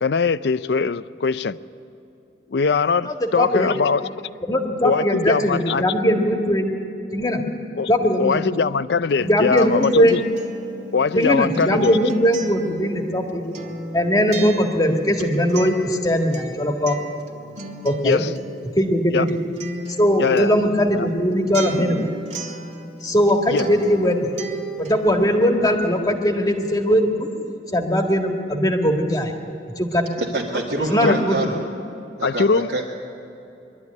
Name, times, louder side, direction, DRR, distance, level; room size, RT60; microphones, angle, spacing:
voice 1, 0.0-1.6 2.5-4.1 4.8-5.9 7.8-7.9 8.2-10.2 10.9-12.0 18.0-18.3 19.1-19.3 20.2-20.5 20.9-21.1 23.5-23.6 31.0-31.2 32.2-32.7, left 5 dB, 70° left, 16 dB, 0.5 m, -21 dB
voice 2, 3.0-3.7 4.5-6.7 7.1-7.4 7.9-8.3 9.2-10.2 11.1-13.4 13.9-17.0 17.8-18.2 18.8-19.3 20.0-22.0 23.0-24.3 24.8-27.3 27.7-29.3 29.8-30.0 30.8-31.5, equal, 20° left, 3 dB, 1.8 m, -20 dB
Acoustic guitar, 9.1-23.3 23.6-25.1, right 2 dB, 40° right, 2.0 m, -35 dB
voice 3, 30.2-31.6 32.2-32.8, right 2 dB, 90° right, -6 dB, 2.1 m, -26 dB
22.5 x 12.5 x 9.4 m, 2.9 s
head